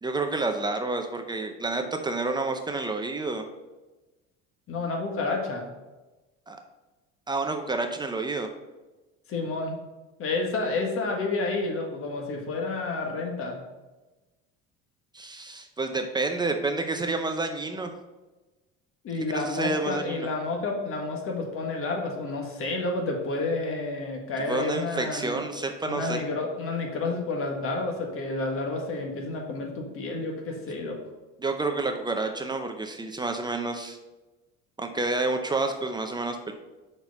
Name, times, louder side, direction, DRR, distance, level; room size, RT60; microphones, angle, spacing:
voice 1, 0.0-3.4 6.5-6.6 7.3-8.5 15.1-17.9 19.3-20.3 24.5-26.2 31.4-34.0 34.8-36.5, right 3 dB, 15° right, 5 dB, 0.6 m, -29 dB
voice 2, 4.7-5.6 9.3-9.8 10.2-13.6 19.0-25.5 25.9-31.0, left 3 dB, 45° left, 1 dB, 1.7 m, -30 dB
6.1 x 4.4 x 5.3 m, 1.1 s
cardioid pair, 125°, 30 cm